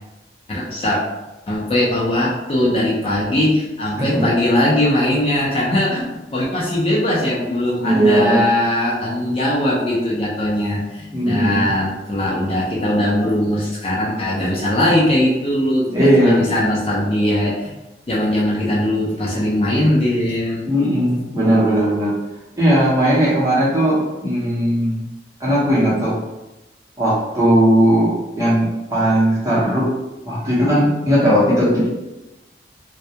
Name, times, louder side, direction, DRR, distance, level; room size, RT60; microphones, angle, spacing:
voice 1, 0.5-1.0 1.5-6.1 6.3-17.7 18.1-20.7, left 1 dB, 30° left, -5 dB, 0.4 m, -20 dB
voice 2, 7.8-8.4 11.1-11.7 15.9-16.4 20.6-22.1 22.6-25.0 25.4-26.2 27.0-29.9 30.2-31.9, equal, 20° right, -7 dB, 0.7 m, -17 dB
2.2 x 2.1 x 2.7 m, 1.0 s
head